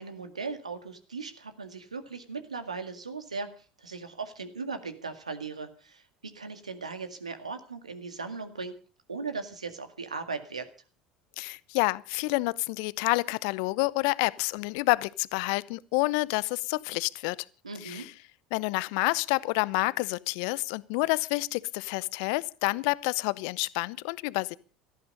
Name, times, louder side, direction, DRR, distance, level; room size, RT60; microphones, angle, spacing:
voice 1, 0.0-8.8 9.1-10.7 17.6-18.1, right 4 dB, 85° right, 2.0 m, -38 dB
voice 2, 11.4-17.4 17.8-18.1 18.5-24.6, left 24 dB, 60° left, 0.7 m, -28 dB
17.5 x 14.0 x 5.4 m
figure-of-eight pair, 70°, 3 cm